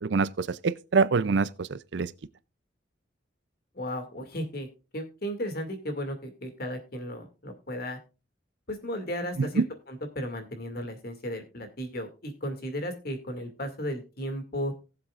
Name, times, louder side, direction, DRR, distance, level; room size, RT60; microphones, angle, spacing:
voice 1, 0.0-2.1 9.4-9.6, right 4 dB, 65° right, 0.5 m, -25 dB
voice 2, 3.7-4.7 4.9-8.0 8.7-14.7, equal, 55° left, 2.3 m, -35 dB
18.5 x 7.4 x 2.4 m
head